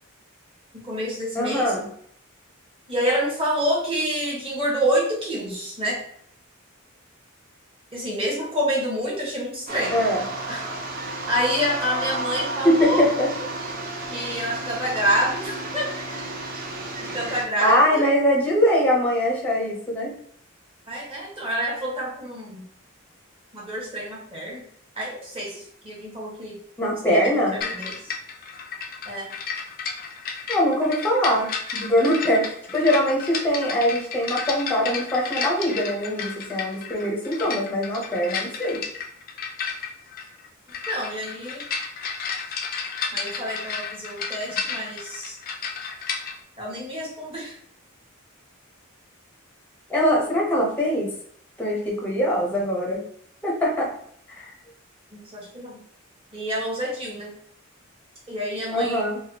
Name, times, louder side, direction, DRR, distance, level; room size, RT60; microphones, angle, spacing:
voice 1, 0.7-1.7 2.9-6.0 7.9-10.0 10.5-10.6 11.3-13.1 14.1-15.9 17.0-18.0 20.9-22.7 23.5-24.6 24.9-26.6 27.1-28.1 29.0-29.3 40.9-41.7 43.1-45.4 46.6-47.6 55.1-55.8 56.3-57.3 58.3-59.1, equal, 25° right, -5 dB, 1.1 m, -27 dB
voice 2, 1.3-1.9 9.9-10.2 12.6-13.3 17.6-20.1 26.8-27.6 30.5-38.8 49.9-51.1 51.6-53.0 53.4-53.9 54.3-54.5 58.7-59.2, equal, 10° left, -2 dB, 0.6 m, -22 dB
sound 1, 9.7-17.4, right 2 dB, 45° right, 0.6 m, -32 dB
sound 2, 27.6-46.4, left 5 dB, 45° left, 0.4 m, -32 dB
3.4 x 2.2 x 2.7 m, 0.64 s
head